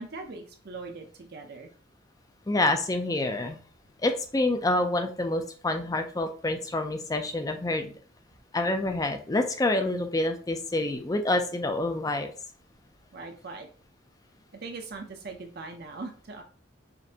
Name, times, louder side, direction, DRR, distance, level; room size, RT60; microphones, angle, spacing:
voice 1, 0.0-1.7 13.1-13.7 14.6-16.4, right 3 dB, 50° right, 3 dB, 0.6 m, -40 dB
voice 2, 2.5-3.6 4.0-7.9 8.5-12.3, left 2 dB, 20° left, 6 dB, 0.4 m, -27 dB
5.1 x 2.6 x 2.8 m, 0.41 s
head